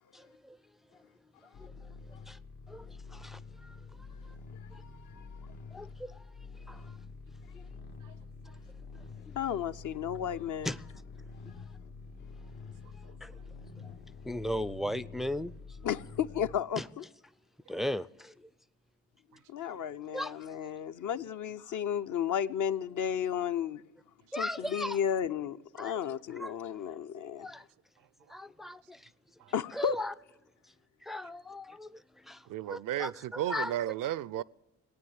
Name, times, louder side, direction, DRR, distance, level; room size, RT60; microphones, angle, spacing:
voice 1, 0.1-0.6 1.6-1.7 2.3-2.4 2.7-3.8 5.7-6.2 6.7-7.0 7.5-7.7 9.0-9.4 10.6-10.8 13.2-13.3 14.2-15.5 15.8-15.9 16.8-16.9 17.7-18.5 20.1-20.6 24.3-25.0 25.8-26.0 26.4-26.5 27.4-27.6 28.3-29.1 29.7-30.1 31.0-33.7, left 1 dB, ahead, 0.4 m, -38 dB
sound 1, 1.5-16.6, left 4 dB, 75° left, 1.8 m, -48 dB
voice 2, 4.6-5.4 9.3-10.7 15.8-17.0 19.5-23.8 24.3-27.5 29.5-30.0, left 8 dB, 50° left, 0.7 m, -33 dB
voice 3, 32.5-34.4, right 12 dB, 55° right, 0.5 m, -34 dB
17.5 x 9.4 x 8.8 m
hypercardioid pair, 45°, 40 cm